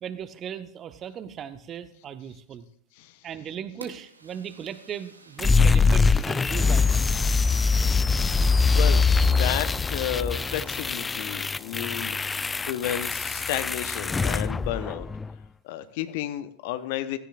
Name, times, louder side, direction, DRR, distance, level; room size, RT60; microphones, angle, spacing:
voice 1, 0.0-2.7 3.2-7.9, right 8 dB, 30° right, 12 dB, 1.0 m, -38 dB
Fire, 3.8-9.7, right 2 dB, 80° right, 1.7 m, -52 dB
sound 1, 5.4-15.4, left 4 dB, 15° left, 0.4 m, -23 dB
voice 2, 8.7-12.2 12.6-15.1 15.6-17.2, left 12 dB, 50° left, 12 dB, 1.0 m, -32 dB
16.5 x 14.5 x 2.5 m, 0.67 s
figure-of-eight pair, 90°, 0 cm